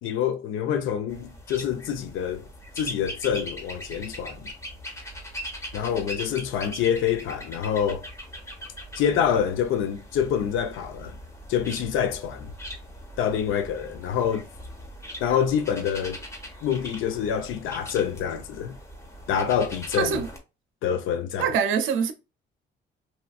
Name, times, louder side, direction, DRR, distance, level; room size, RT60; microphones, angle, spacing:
voice 1, 0.0-2.5 2.8-4.5 5.7-8.1 9.0-11.2 11.5-12.5 13.2-14.5 15.2-16.2 16.6-18.8 19.3-20.2 20.8-21.6, left 8 dB, 85° left, 0.5 m, -26 dB
sound 1, 1.1-20.4, equal, 15° left, 1.0 m, -41 dB
voice 2, 20.0-20.3 21.4-22.1, right 7 dB, 85° right, 0.5 m, -24 dB
3.0 x 2.5 x 2.3 m
cardioid pair, 90°, 20 cm